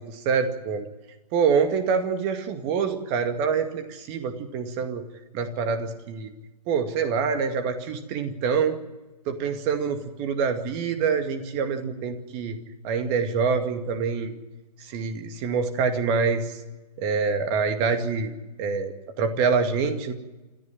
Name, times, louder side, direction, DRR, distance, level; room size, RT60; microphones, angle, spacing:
voice 1, 0.1-0.9 1.3-5.0 5.3-6.3 6.7-8.8 9.3-12.6 12.8-14.3 14.8-16.6 17.0-18.3 18.6-20.1, right 5 dB, 25° right, 8 dB, 2.2 m, -26 dB
27.5 x 13.5 x 9.3 m, 1.1 s
figure-of-eight pair, 130°, 21 cm